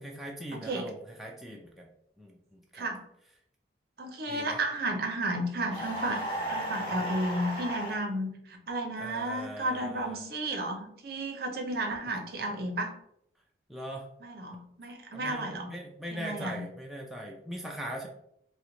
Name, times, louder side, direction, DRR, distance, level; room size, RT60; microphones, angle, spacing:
voice 1, 0.0-1.9 2.2-2.9 4.3-4.6 6.3-7.1 9.0-10.2 13.7-14.1 15.1-18.1, equal, ahead, -2 dB, 0.3 m, -41 dB
voice 2, 0.5-0.9 2.7-3.0 4.0-6.2 6.5-12.9 14.2-15.7 16.1-16.6, right 1 dB, 55° right, 3 dB, 0.6 m, -33 dB
sound 1, 5.7-8.0, equal, 30° left, 1.2 m, -34 dB
3.0 x 2.1 x 3.7 m, 0.74 s
head